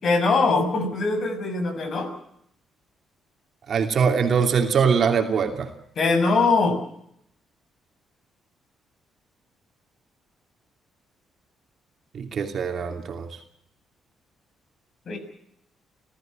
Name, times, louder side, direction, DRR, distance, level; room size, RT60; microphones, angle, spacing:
voice 1, 0.0-2.1 6.0-6.8 15.1-15.2, left 3 dB, 55° left, 8 dB, 6.6 m, -22 dB
voice 2, 3.7-5.7 12.1-13.3, right 6 dB, 55° right, 5 dB, 2.8 m, -22 dB
29.0 x 14.5 x 7.6 m, 0.73 s
cardioid pair, 90°, 0 cm